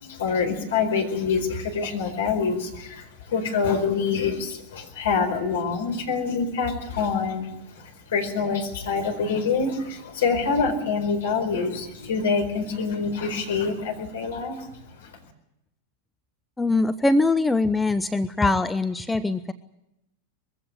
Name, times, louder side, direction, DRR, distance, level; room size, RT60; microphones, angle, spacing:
voice 1, 0.0-15.1, left 5 dB, 60° left, 4 dB, 4.5 m, -26 dB
voice 2, 16.6-19.5, left 2 dB, 10° left, 11 dB, 0.7 m, -22 dB
22.0 x 15.5 x 9.9 m, 0.87 s
figure-of-eight pair, 90°, 0 cm